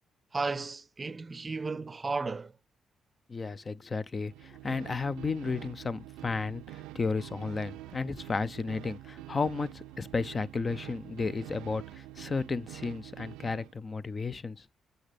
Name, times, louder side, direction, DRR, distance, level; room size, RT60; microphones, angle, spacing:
voice 1, 0.3-2.5, right 3 dB, 35° right, 0.5 m, -34 dB
voice 2, 3.3-14.6, left 4 dB, 40° left, 0.5 m, -33 dB
sound 1, 4.2-13.7, right 16 dB, 85° right, 0.3 m, -46 dB
8.6 x 3.9 x 3.4 m
supercardioid pair, 50°, 0 cm